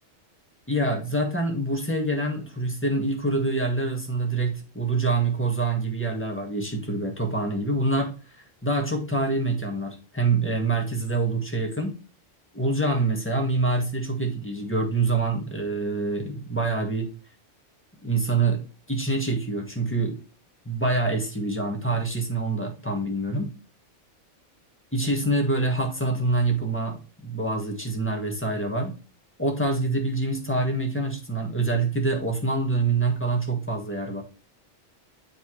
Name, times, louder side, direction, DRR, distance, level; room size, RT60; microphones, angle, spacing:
voice 1, 0.7-11.9 12.5-17.1 18.0-18.6 18.9-20.2 20.6-23.5 24.9-28.9 29.4-34.2, right 2 dB, 10° left, 2 dB, 1.5 m, -26 dB
8.2 x 4.7 x 3.1 m, 0.34 s
omnidirectional pair, 1.2 m